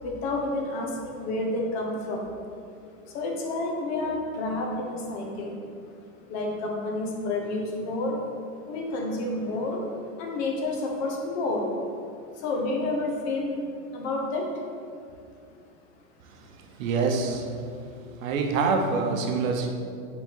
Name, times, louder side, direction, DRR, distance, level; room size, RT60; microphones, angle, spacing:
voice 1, 0.0-2.3 3.1-5.6 6.3-8.2 8.7-9.8 10.2-11.7 12.3-13.6 13.9-14.5, left 2 dB, 45° left, 0 dB, 1.3 m, -29 dB
voice 2, 16.8-17.6 18.2-19.7, right 4 dB, 70° right, 4 dB, 0.9 m, -25 dB
5.9 x 3.9 x 5.3 m, 2.4 s
supercardioid pair, 150°, 42 cm